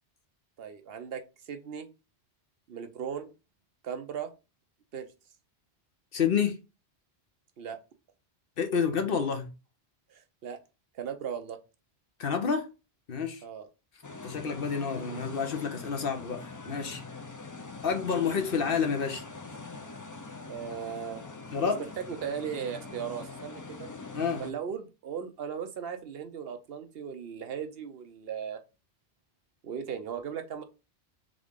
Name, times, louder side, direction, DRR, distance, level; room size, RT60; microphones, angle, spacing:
voice 1, 0.6-1.9 2.7-3.3 3.8-4.3 4.9-5.1 7.6-7.8 10.1-10.6 10.9-11.6 13.4-13.7 20.5-21.2 21.6-21.7 22.0-23.9 24.4-28.6 29.6-30.6, right 7 dB, 65° right, 0.8 m, -37 dB
voice 2, 6.1-6.6 8.6-9.5 12.2-12.7 13.1-13.4 14.2-17.0 17.8-19.2 21.5-21.8 24.1-24.5, left 6 dB, 60° left, 0.9 m, -29 dB
sound 1, 14.0-24.5, left 3 dB, 30° left, 0.3 m, -43 dB
3.8 x 3.6 x 3.5 m
omnidirectional pair, 1.1 m